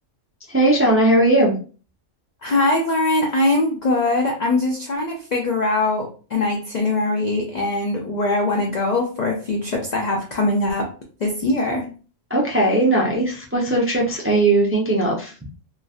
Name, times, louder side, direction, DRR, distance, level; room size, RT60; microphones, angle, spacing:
voice 1, 0.5-1.5 12.3-15.3, right 2 dB, 20° right, -3 dB, 0.4 m, -18 dB
voice 2, 2.4-10.9 11.2-11.9, left 2 dB, 60° left, 1 dB, 0.4 m, -22 dB
3.0 x 2.4 x 2.4 m, 0.37 s
omnidirectional pair, 1.3 m